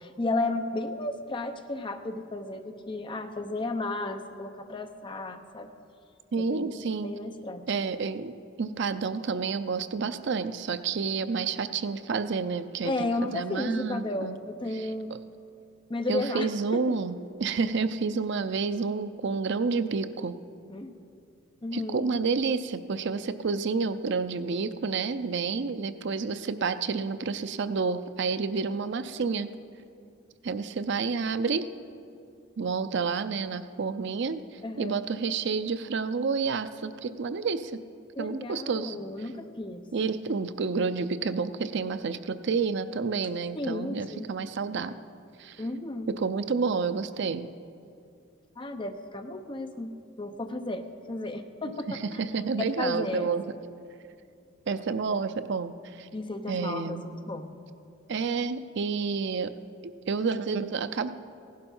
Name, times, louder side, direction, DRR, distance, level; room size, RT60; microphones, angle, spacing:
voice 1, 0.0-5.7 6.4-7.7 12.8-15.1 15.9-16.8 20.7-20.9 21.6-22.0 34.6-35.0 38.2-39.8 43.5-44.3 45.6-46.1 48.6-49.9 50.2-52.0 52.6-53.3 56.1-57.5, left 2 dB, 25° left, 7 dB, 0.7 m, -33 dB
voice 2, 6.3-7.1 7.7-14.4 14.7-15.2 16.1-17.1 17.4-20.4 21.7-29.5 30.4-31.7 32.6-37.8 38.2-39.0 39.9-44.9 45.4-45.6 46.1-47.5 52.0-53.5 54.7-56.1 56.5-57.1 58.1-59.5 59.8-61.1, right 5 dB, 60° right, 12 dB, 0.5 m, -29 dB
16.0 x 11.5 x 5.4 m, 2.5 s
head